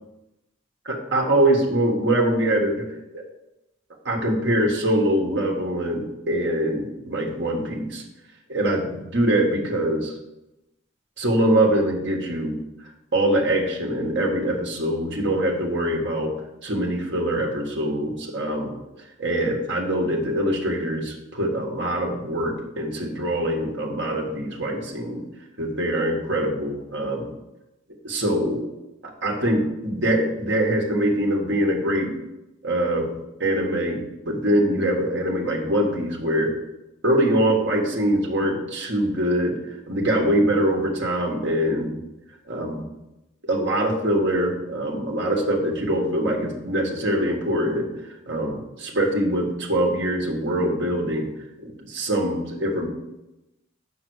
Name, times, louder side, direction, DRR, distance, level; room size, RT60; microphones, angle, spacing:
voice 1, 0.9-2.9 3.1-3.2 4.0-8.0 8.5-10.1 11.2-12.5 13.1-16.3 16.6-18.7 19.2-25.2 25.6-27.3 28.0-28.8 29.0-32.1 32.6-36.5 37.0-39.5 39.9-42.0 42.5-42.8 43.4-47.9 48.3-51.3 51.6-52.9, right 1 dB, 55° right, 0 dB, 1.5 m, -23 dB
6.0 x 5.9 x 6.2 m, 0.94 s
head